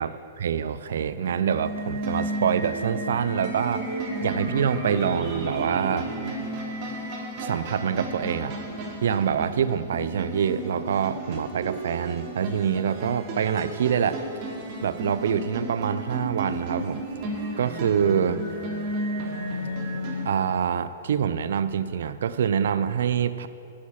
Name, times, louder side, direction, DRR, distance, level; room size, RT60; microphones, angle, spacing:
voice 1, 0.4-3.9 4.2-6.1 7.4-8.6 9.0-14.2 14.8-17.1 17.6-18.4 20.2-23.5, right 8 dB, 70° right, 13 dB, 0.5 m, -25 dB
sound 1, 0.9-20.3, right 1 dB, 40° right, 3.6 m, -33 dB
11.5 x 8.6 x 7.3 m, 2.5 s
hypercardioid pair, 115°, 0 cm